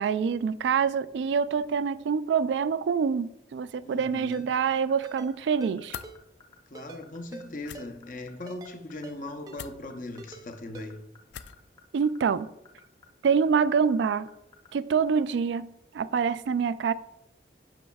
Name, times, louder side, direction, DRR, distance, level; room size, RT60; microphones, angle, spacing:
voice 1, 0.0-6.0 11.9-12.5 13.2-14.3 14.7-16.9, right 6 dB, 85° right, 0.3 m, -26 dB
voice 2, 3.8-4.5 6.7-11.0, left 2 dB, 45° left, 0.7 m, -39 dB
Ringtone, 4.3-4.4 5.0-5.3 5.6-5.7 6.0-6.2 6.7-7.0 7.3-7.4 7.7-7.9 8.5-8.7 9.0-9.2 9.5-9.6 10.2-10.4 10.7-10.9, right 3 dB, 20° right, 0.5 m, -44 dB
sound 1, 4.7-15.2, left 6 dB, 20° left, 0.9 m, -54 dB
sound 2, 5.9-6.1 7.6-7.8 9.5-9.8 11.3-11.6, left 8 dB, 80° left, 0.4 m, -40 dB
8.6 x 6.2 x 2.3 m
head